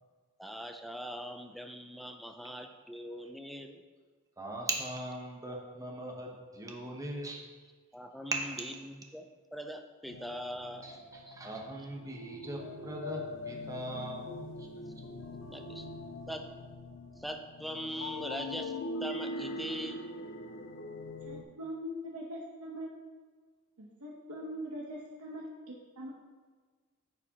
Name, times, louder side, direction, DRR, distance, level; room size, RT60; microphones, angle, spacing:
voice 1, 0.4-3.8 7.9-10.9 11.3-11.4 15.5-15.9 16.3-16.5 17.2-18.7 19.0-20.0, equal, ahead, 5 dB, 0.3 m, -41 dB
voice 2, 4.4-7.5 8.3-8.6 10.8-14.7, right 2 dB, 15° right, 0 dB, 0.9 m, -39 dB
sound 1, 10.1-21.4, left 2 dB, 60° left, 0.6 m, -42 dB
voice 3, 21.2-22.9 23.8-26.1, equal, 85° right, -3 dB, 1.0 m, -42 dB
9.5 x 4.9 x 2.8 m, 1.5 s
head